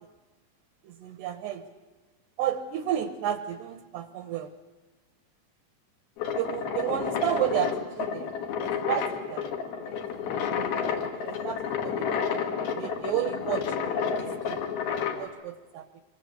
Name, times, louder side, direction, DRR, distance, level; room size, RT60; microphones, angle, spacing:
voice 1, 0.8-1.6 2.4-4.5 6.4-8.3 8.6-9.5 9.9-10.7 11.2-12.3 12.7-13.8 14.2-14.6 14.9-16.0, right 10 dB, 70° right, 10 dB, 2.8 m, -32 dB
sound 1, 6.2-15.2, left 6 dB, 55° left, 3.5 m, -30 dB
25.5 x 24.5 x 8.2 m, 1.2 s
omnidirectional pair, 5.9 m